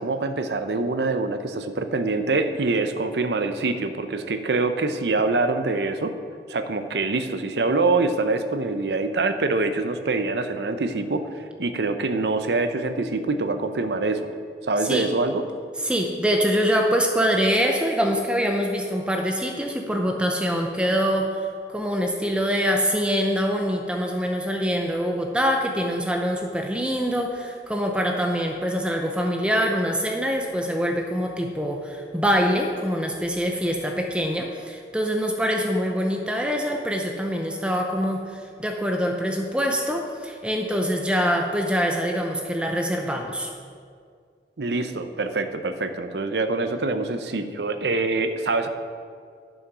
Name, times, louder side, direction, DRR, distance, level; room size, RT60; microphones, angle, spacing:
voice 1, 0.0-6.1 6.5-11.3 11.6-14.3 14.7-15.4 44.6-48.7, right 3 dB, 75° right, 8 dB, 0.7 m, -25 dB
voice 2, 15.8-43.5, equal, 5° right, 2 dB, 0.6 m, -24 dB
11.0 x 6.4 x 6.1 m, 2.2 s
head